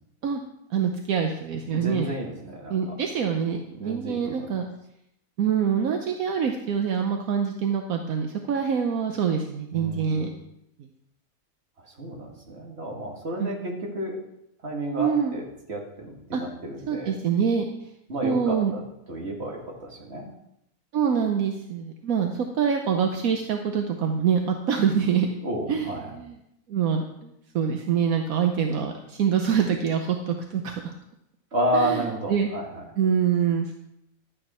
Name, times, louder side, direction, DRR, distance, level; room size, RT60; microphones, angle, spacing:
voice 1, 0.7-2.1 2.7-4.7 5.4-10.3 13.4-13.7 15.0-15.3 16.3-16.4 16.9-17.7 18.2-18.7 20.9-25.3 25.7-26.3 26.7-30.9 31.7-32.5 33.0-33.8, right 7 dB, 75° right, 4 dB, 1.3 m, -25 dB
voice 2, 1.7-3.0 3.8-4.6 9.7-10.4 11.8-14.2 14.6-17.2 18.1-18.8 19.1-20.3 25.4-26.2 31.5-32.8, right 1 dB, 50° right, -1 dB, 2.2 m, -31 dB
12.0 x 8.9 x 4.3 m, 0.80 s
omnidirectional pair, 1.5 m